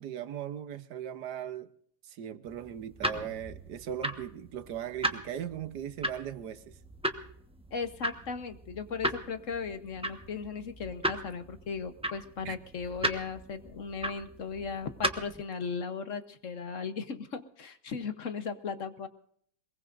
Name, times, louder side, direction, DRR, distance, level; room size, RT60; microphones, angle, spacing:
voice 1, 0.0-1.7 2.0-6.8 12.4-12.6, right 9 dB, 80° right, 1.5 m, -38 dB
sound 1, 2.5-15.4, right 1 dB, 5° right, 1.0 m, -37 dB
voice 2, 7.7-19.1, left 5 dB, 55° left, 1.2 m, -37 dB
22.5 x 21.5 x 2.6 m
omnidirectional pair, 1.8 m